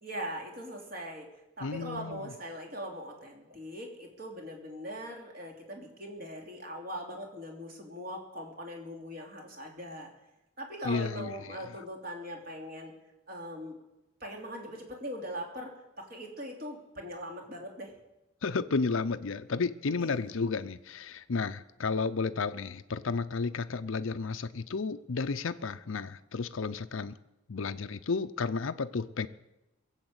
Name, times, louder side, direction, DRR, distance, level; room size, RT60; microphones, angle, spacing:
voice 1, 0.0-1.3 1.6-10.1 10.6-12.9 13.3-13.8 14.2-15.7 16.0-17.9 20.0-20.3, equal, 45° right, 1 dB, 3.1 m, -41 dB
voice 2, 1.6-2.3 10.8-11.6 18.4-27.2 27.5-29.3, left 4 dB, 65° left, 9 dB, 0.6 m, -32 dB
21.5 x 8.0 x 8.0 m, 0.92 s
head